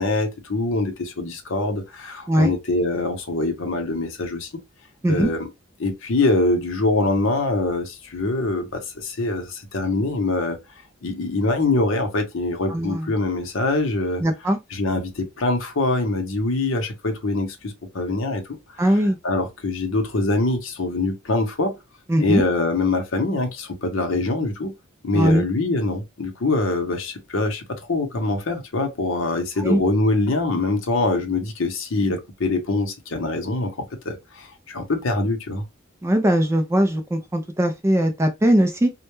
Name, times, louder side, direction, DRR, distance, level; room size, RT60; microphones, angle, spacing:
voice 1, 0.0-4.5 5.1-5.5 5.8-10.6 11.0-14.2 14.7-18.4 18.9-19.0 19.2-21.8 22.2-24.7 25.0-35.6, left 2 dB, 65° left, 0.7 m, -24 dB
voice 2, 12.7-13.1 14.2-14.6 18.8-19.2 22.1-22.4 25.1-25.5 29.6-29.8 36.0-38.9, right 1 dB, 10° right, 0.3 m, -20 dB
2.1 x 2.1 x 3.0 m
head